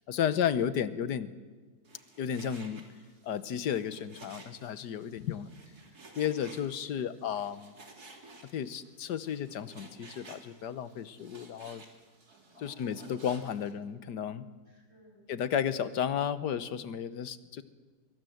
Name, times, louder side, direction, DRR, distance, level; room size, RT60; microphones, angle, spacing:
voice 1, 0.1-1.3 2.2-2.8 3.2-5.5 6.1-7.7 8.5-11.8 12.6-14.4 15.3-17.6, left 8 dB, 80° left, 14 dB, 1.6 m, -33 dB
Frying (food), 1.8-13.7, right 2 dB, 65° right, 3.6 m, -54 dB
voice 2, 5.8-6.2 6.8-7.1 12.5-13.2 14.7-15.3, left 1 dB, 40° left, 0 dB, 7.1 m, -58 dB
24.5 x 23.0 x 7.9 m, 1.4 s
omnidirectional pair, 1.8 m